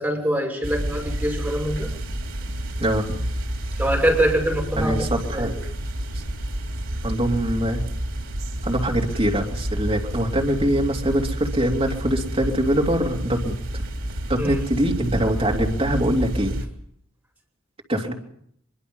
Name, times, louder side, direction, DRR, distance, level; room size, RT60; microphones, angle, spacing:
voice 1, 0.0-1.9 3.8-5.0 5.3-5.5 14.4-14.6, right 1 dB, 5° right, -1 dB, 6.6 m, -24 dB
sound 1, 0.6-16.7, right 1 dB, 80° right, 3.3 m, -29 dB
voice 2, 4.7-5.5 6.1-6.2 7.0-7.8 8.6-13.8 14.3-16.6 17.9-18.1, right 1 dB, 25° right, 0 dB, 3.1 m, -23 dB
24.0 x 23.0 x 5.5 m, 0.70 s
head